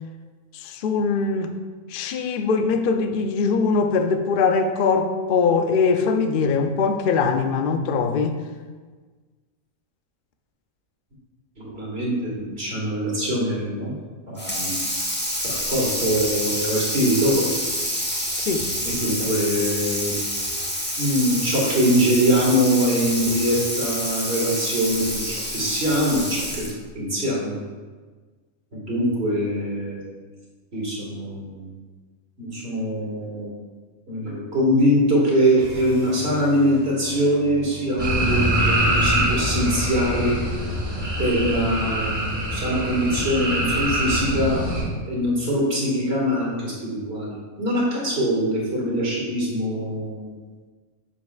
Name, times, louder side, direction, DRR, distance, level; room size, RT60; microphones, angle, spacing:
voice 1, 0.5-1.5 1.9-8.4 18.4-18.7, left 5 dB, 80° left, 7 dB, 0.4 m, -22 dB
voice 2, 11.6-14.0 14.3-14.8 15.4-17.5 18.8-20.1 21.0-26.6 26.9-27.6 28.7-30.1 30.7-31.7 32.4-33.5 34.1-40.3 41.2-44.6 45.1-50.3, equal, 45° right, -5 dB, 2.1 m, -23 dB
Water tap faucet / Sink (filling or washing), 14.4-26.9, equal, 15° left, 0.4 m, -28 dB
sound 1, 35.5-41.7, equal, 85° right, 1.5 m, -39 dB
sound 2, 38.0-44.8, right 1 dB, 20° right, 1.7 m, -24 dB
7.2 x 7.0 x 2.4 m, 1.4 s
omnidirectional pair, 1.5 m